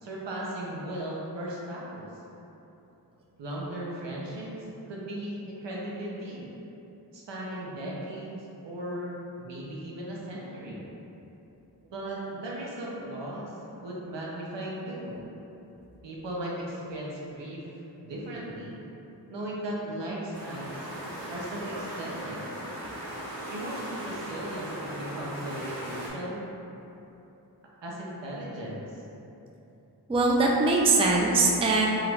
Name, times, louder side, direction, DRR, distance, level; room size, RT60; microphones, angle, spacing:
voice 1, 0.0-2.1 3.4-6.4 7.1-10.8 11.8-13.5 13.8-15.2 16.0-18.8 19.3-20.9 21.3-22.5 23.5-26.4 27.8-28.8, right 1 dB, 80° right, -5 dB, 0.7 m, -37 dB
sound 1, 20.3-26.1, right 1 dB, 55° right, 1.1 m, -38 dB
voice 2, 30.1-31.9, right 3 dB, 15° right, -2 dB, 0.3 m, -22 dB
2.9 x 2.4 x 3.2 m, 2.9 s
wide cardioid pair, 50°, 42 cm